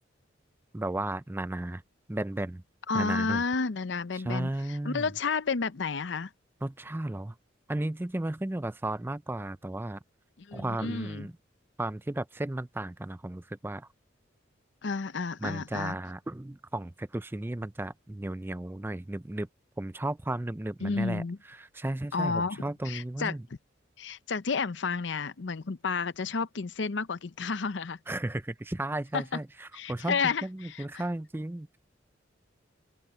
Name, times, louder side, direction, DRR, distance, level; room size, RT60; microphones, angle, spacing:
voice 1, 0.7-1.8 2.1-2.6 2.9-3.4 4.1-5.1 6.6-7.3 7.7-10.0 10.5-11.3 11.8-13.9 15.4-19.5 19.8-23.4 28.1-31.8, right 1 dB, 10° right, 0.4 m, -34 dB
voice 2, 2.9-6.3 10.4-11.3 14.8-16.0 20.8-21.4 22.1-23.6 24.0-28.0 29.1-29.2 29.7-31.0, left 4 dB, 65° left, 0.6 m, -31 dB
open air
head